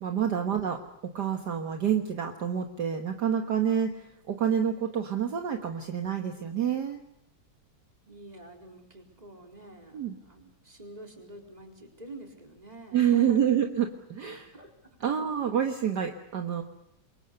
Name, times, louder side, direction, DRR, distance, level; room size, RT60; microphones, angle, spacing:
voice 1, 0.0-7.0 9.9-10.1 12.9-14.5 15.0-16.6, right 8 dB, 60° right, 4 dB, 1.9 m, -28 dB
voice 2, 8.1-13.5 14.3-15.0, right 1 dB, 20° right, 2 dB, 4.1 m, -47 dB
27.5 x 23.0 x 6.8 m, 0.79 s
omnidirectional pair, 2.2 m